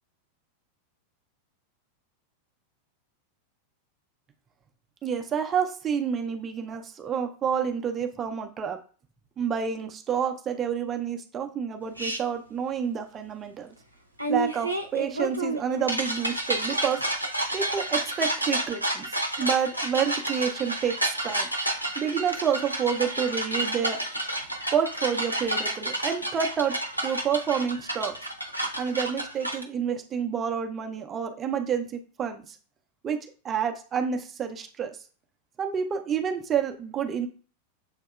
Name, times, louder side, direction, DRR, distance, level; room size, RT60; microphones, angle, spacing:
voice 1, 5.0-8.8 9.4-13.7 14.3-17.0 17.5-21.5 22.0-24.0 24.7-26.7 27.0-28.2 28.8-32.6 33.0-33.2 33.4-34.9 35.6-37.3, right 7 dB, 25° right, 5 dB, 0.6 m, -29 dB
sound 1, 12.0-12.2 14.2-29.6, right 1 dB, 90° right, 0.6 m, -30 dB
7.2 x 2.7 x 2.3 m, 0.39 s
figure-of-eight pair, 90°, 0 cm